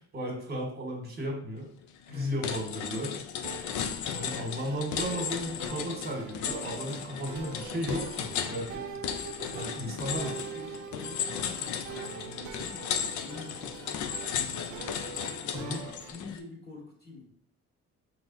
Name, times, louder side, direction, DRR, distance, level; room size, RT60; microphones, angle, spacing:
voice 1, 0.0-1.7 2.1-3.2 4.1-8.8 9.5-10.3 15.6-15.8, equal, 35° right, 1 dB, 1.4 m, -34 dB
sound 1, 1.8-2.1 2.4-16.4, left 8 dB, 70° left, 0.5 m, -35 dB
sound 2, 3.4-16.1, right 7 dB, 75° right, 0.5 m, -44 dB
voice 2, 9.3-17.4, left 3 dB, 35° left, -2 dB, 1.6 m, -47 dB
4.1 x 3.3 x 2.6 m, 0.63 s
cardioid pair, 90°, 30 cm